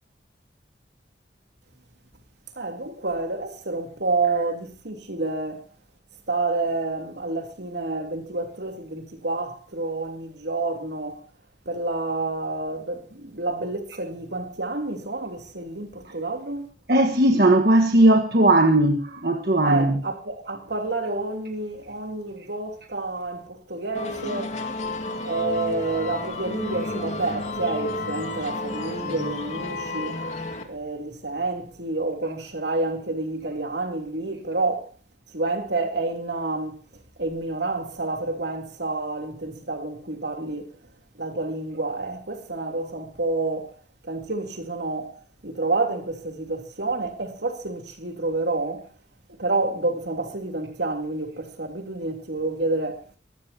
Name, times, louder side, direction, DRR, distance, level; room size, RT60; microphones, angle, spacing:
voice 1, 2.5-5.6 6.3-11.3 11.6-16.7 19.6-24.6 25.2-30.2 30.6-34.9 35.3-36.8 37.2-40.7 41.1-43.8 44.0-48.9 49.4-53.0, right 3 dB, 75° right, 3.3 m, -29 dB
voice 2, 16.9-20.0, right 1 dB, 60° right, 1.5 m, -18 dB
sound 1, 23.9-30.6, left 2 dB, 40° left, 2.4 m, -31 dB
24.5 x 15.0 x 2.9 m
head